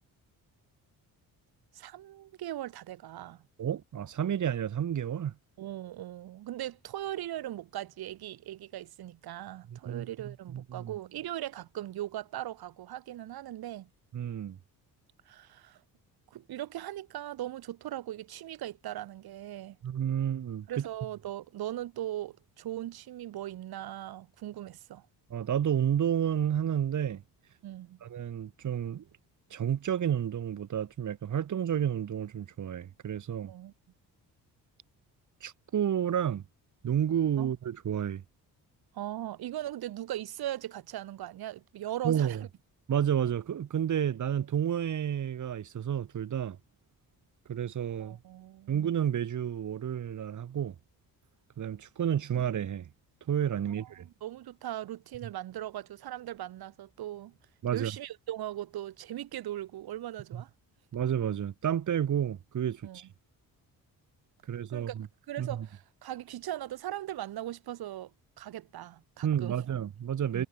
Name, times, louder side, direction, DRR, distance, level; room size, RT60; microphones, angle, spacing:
voice 1, 1.7-3.4 5.6-13.9 15.3-15.8 16.3-19.8 20.7-25.1 27.6-28.0 33.4-33.7 37.4-37.5 38.9-42.4 48.0-48.7 53.7-57.3 57.7-60.5 62.8-63.0 64.7-65.0 65.3-68.1 68.4-69.6 70.3-70.4, right 13 dB, 85° right, 5.9 m, -39 dB
voice 2, 3.6-5.3 9.7-10.9 14.1-14.6 19.8-20.9 25.3-27.2 28.0-29.0 29.5-33.5 35.4-36.4 36.8-38.2 42.0-42.4 42.9-46.6 47.5-48.2 48.7-50.7 51.6-52.9 53.3-54.1 57.6-57.9 60.3-60.4 60.9-63.1 64.5-65.1 65.4-65.6 69.2-70.5, right 9 dB, 55° right, 6.6 m, -30 dB
cardioid pair, 155°, 36 cm